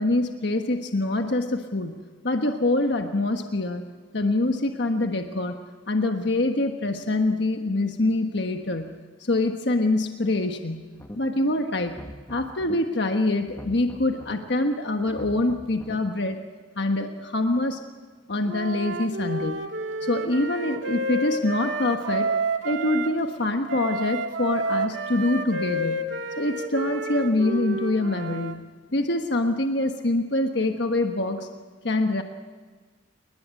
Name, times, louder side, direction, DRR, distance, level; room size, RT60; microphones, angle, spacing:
voice 1, 0.0-3.8 4.1-5.6 5.9-10.9 11.2-12.0 12.3-16.4 16.8-17.8 18.3-19.6 20.0-22.3 22.6-26.1 26.4-31.5 31.8-32.2, left 2 dB, 65° left, 5 dB, 1.4 m, -25 dB
sound 1, 10.9-11.4 11.8-12.8 13.4-14.4 15.0-16.0, equal, 15° left, 1.6 m, -42 dB
Wind instrument woodwind instrument, 18.5-23.1 23.7-28.5, right 2 dB, 85° right, 2.0 m, -30 dB
29.5 x 20.0 x 8.4 m, 1.5 s
head